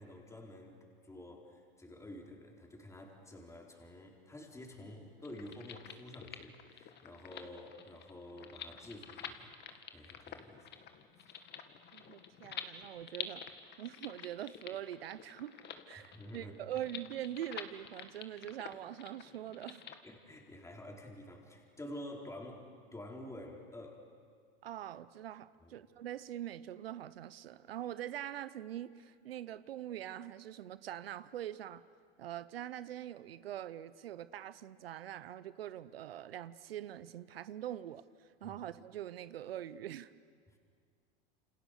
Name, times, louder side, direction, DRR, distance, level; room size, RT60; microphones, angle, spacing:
voice 1, 0.0-9.5 9.9-10.7 11.2-11.4 16.0-16.6 20.0-24.0 25.6-25.8 38.4-38.6 40.5-40.6, left 1 dB, 10° left, 0 dB, 4.4 m, -49 dB
sound 1, 5.2-20.0, left 8 dB, 35° left, 2.1 m, -48 dB
voice 2, 11.9-13.4 13.8-15.5 15.9-19.8 24.6-31.8 32.2-40.1, right 11 dB, 85° right, 15 dB, 0.9 m, -43 dB
29.5 x 28.5 x 6.8 m, 2.1 s
hypercardioid pair, 95°, 29 cm